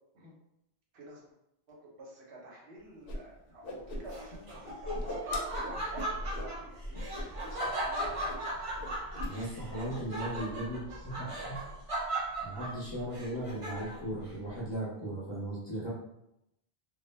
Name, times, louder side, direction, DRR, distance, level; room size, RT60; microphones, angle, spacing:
voice 1, 0.9-1.3 1.7-8.2 10.6-11.9, right 1 dB, 80° right, -3 dB, 1.0 m, -50 dB
Whoosh swoosh swish, 3.1-3.2 3.5-4.4 4.6-6.5 6.9-7.2 7.5-7.7 8.0-8.5 8.8-9.3, left 1 dB, 65° left, 0.7 m, -40 dB
Laughter, 4.1-14.1, right 1 dB, 45° right, 0.4 m, -37 dB
voice 2, 9.3-10.8 11.2-11.6 12.4-15.9, right 1 dB, 30° left, -7 dB, 0.6 m, -37 dB
2.2 x 2.1 x 3.1 m, 0.84 s
omnidirectional pair, 1.1 m